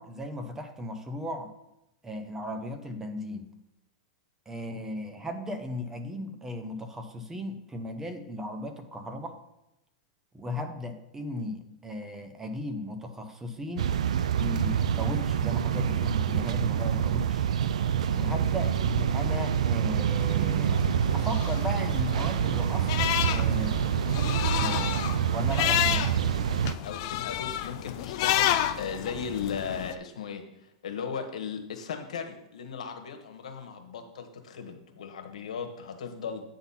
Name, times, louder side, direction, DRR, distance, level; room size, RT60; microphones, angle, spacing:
voice 1, 0.0-1.5 2.0-3.5 4.5-9.4 10.3-14.0 14.4-17.5 18.1-20.9 21.1-23.9 24.5-26.3, left 1 dB, 10° right, 6 dB, 0.8 m, -36 dB
sound 1, 13.8-26.7, right 8 dB, 90° right, 0.4 m, -26 dB
sound 2, 20.2-29.9, left 12 dB, 55° left, 0.5 m, -31 dB
voice 2, 26.8-36.4, left 6 dB, 90° left, 5 dB, 1.2 m, -37 dB
8.7 x 4.0 x 5.7 m, 0.88 s
supercardioid pair, 135°, 4 cm